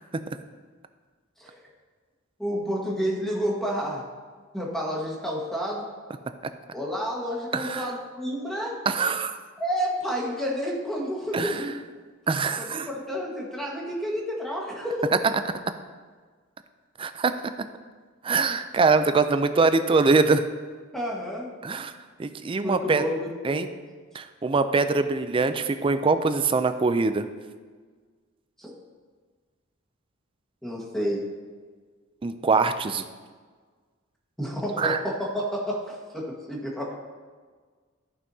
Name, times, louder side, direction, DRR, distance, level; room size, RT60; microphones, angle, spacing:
voice 1, 2.4-4.0 4.5-5.9 6.7-8.8 9.6-11.8 12.6-15.1 20.9-21.5 22.6-23.6 28.6-28.7 30.6-31.2 34.4-36.9, equal, ahead, -3 dB, 1.4 m, -30 dB
voice 2, 7.5-7.9 8.9-9.4 11.3-11.7 12.3-12.9 15.2-15.3 17.0-17.3 18.2-20.4 21.6-21.9 22.2-23.0 23.4-23.7 24.1-27.2 32.2-33.0 34.8-35.0, right 4 dB, 25° right, 10 dB, 0.4 m, -23 dB
13.5 x 5.6 x 2.7 m, 1.5 s
head